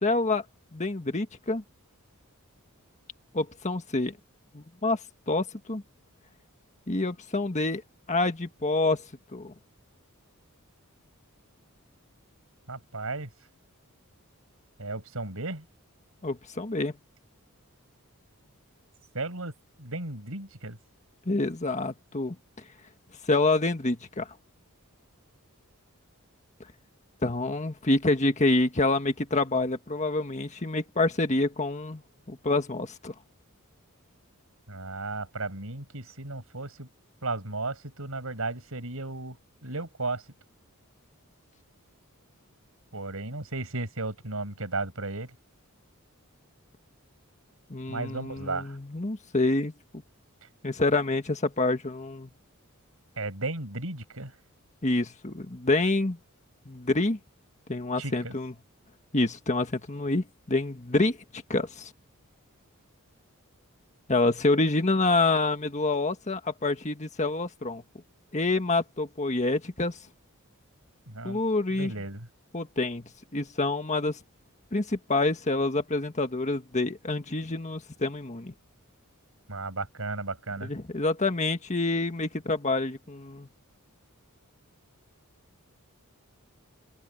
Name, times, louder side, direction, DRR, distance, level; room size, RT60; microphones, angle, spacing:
voice 1, 0.0-0.4 0.7-1.6 3.3-4.1 4.5-5.0 5.3-5.8 6.9-7.8 8.1-9.0 9.3-9.5 16.2-16.9 21.3-22.3 23.3-24.3 27.2-32.0 32.3-33.1 47.7-49.7 50.6-52.3 54.8-56.2 56.6-57.2 57.7-58.5 59.1-61.9 64.1-67.8 68.3-70.0 71.2-71.9 72.5-73.0 73.3-74.2 74.7-78.5 80.6-83.5, left 2 dB, 35° left, 1.6 m, -27 dB
voice 2, 12.7-13.3 14.8-15.6 19.1-19.5 19.8-20.8 34.7-36.9 37.2-40.2 42.9-45.3 47.9-48.8 53.2-54.3 58.0-58.3 71.1-71.4 71.7-72.3 79.5-80.7, right 2 dB, 70° right, 6.6 m, -34 dB
head